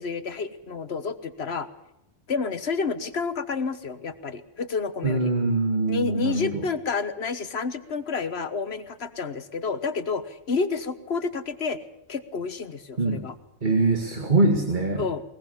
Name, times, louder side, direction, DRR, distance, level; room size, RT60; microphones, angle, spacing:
voice 1, 0.0-1.7 2.3-5.3 5.9-11.8 12.1-13.3 15.0-15.2, left 4 dB, 55° left, 11 dB, 1.4 m, -30 dB
voice 2, 5.0-6.6 13.0-13.2 13.6-15.0, right 2 dB, 40° right, 3 dB, 2.2 m, -23 dB
21.0 x 20.5 x 7.2 m, 0.83 s
omnidirectional pair, 1.3 m